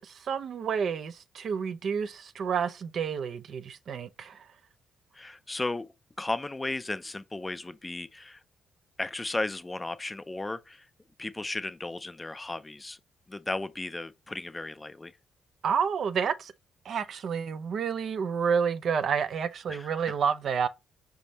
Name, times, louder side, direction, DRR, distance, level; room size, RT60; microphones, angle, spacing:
voice 1, 0.0-4.5 15.6-16.5 16.9-20.7, right 6 dB, 60° right, 0.4 m, -29 dB
voice 2, 5.1-8.4 9.0-10.9 11.2-13.0 13.3-15.1 19.7-20.1, left 2 dB, 15° left, 0.4 m, -35 dB
5.2 x 3.5 x 2.8 m
cardioid pair, 90°, 0 cm